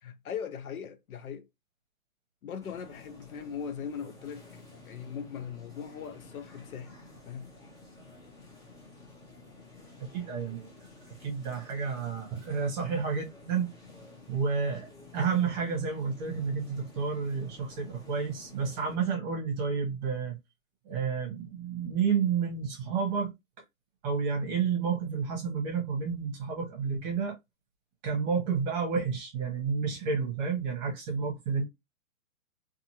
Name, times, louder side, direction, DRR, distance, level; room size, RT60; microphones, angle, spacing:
voice 1, 0.0-1.5 2.4-7.0 7.2-7.5, left 7 dB, 75° left, 0.8 m, -40 dB
sound 1, 2.6-19.0, left 3 dB, 10° left, 0.6 m, -52 dB
voice 2, 10.0-10.7 11.1-13.7 14.3-20.4 20.8-23.3 24.0-27.4 28.0-31.7, right 5 dB, 30° right, 1.0 m, -30 dB
2.6 x 2.6 x 2.7 m
hypercardioid pair, 140°, 43 cm